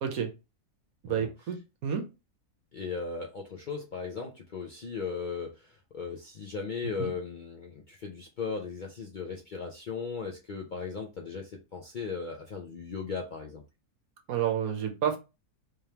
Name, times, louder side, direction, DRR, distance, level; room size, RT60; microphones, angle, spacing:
voice 1, 0.0-0.3 1.0-2.1 7.0-7.1 14.3-15.2, right 8 dB, 70° right, 1.2 m, -30 dB
voice 2, 2.7-13.6, left 5 dB, 85° left, 0.4 m, -37 dB
3.4 x 3.4 x 2.9 m
omnidirectional pair, 1.6 m